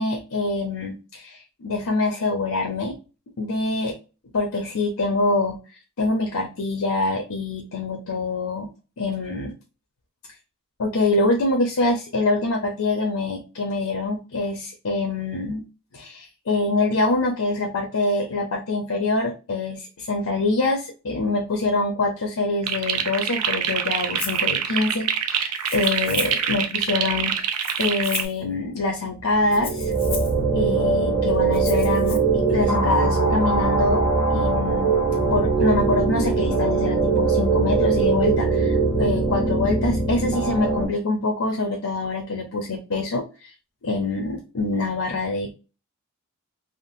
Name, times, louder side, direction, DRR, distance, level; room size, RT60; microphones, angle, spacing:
voice 1, 0.0-3.0 3.4-3.9 4.3-5.6 6.0-8.7 9.0-9.5 10.8-15.6 15.9-27.5 27.8-29.9 30.5-34.0 34.3-34.9 35.3-43.5 43.8-45.5, left 2 dB, 80° left, 2 dB, 0.6 m, -25 dB
sound 1, 22.6-28.2, right 8 dB, 85° right, 0.5 m, -25 dB
Rattle (instrument), 24.2-24.4 25.6-26.5 27.5-28.4 29.5-30.4 31.5-32.2, left 6 dB, 25° left, 0.4 m, -35 dB
sound 2, 29.3-40.8, right 4 dB, 30° right, 1.3 m, -21 dB
3.6 x 2.1 x 2.6 m, 0.32 s
head